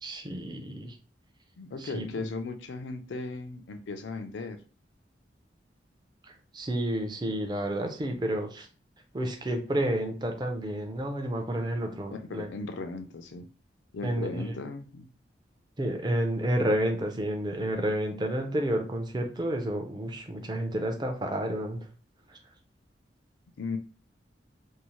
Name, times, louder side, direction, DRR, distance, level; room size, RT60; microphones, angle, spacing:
voice 1, 0.0-0.9 1.8-2.1 6.5-8.7 9.1-12.5 14.0-14.4 15.8-21.8, right 1 dB, 25° right, 0.4 m, -30 dB
voice 2, 1.6-4.6 12.1-13.5 13.9-15.1 23.6-23.8, left 3 dB, 80° left, 0.4 m, -37 dB
2.6 x 2.0 x 3.0 m
head